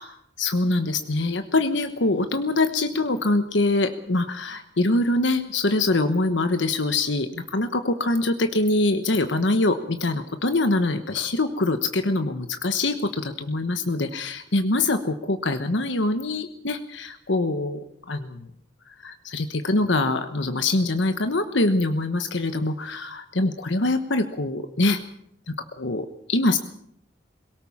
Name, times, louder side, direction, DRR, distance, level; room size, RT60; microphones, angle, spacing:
voice 1, 0.4-18.5 19.0-25.0 25.5-26.6, left 2 dB, 70° left, 8 dB, 1.2 m, -24 dB
22.5 x 18.0 x 7.3 m, 0.72 s
head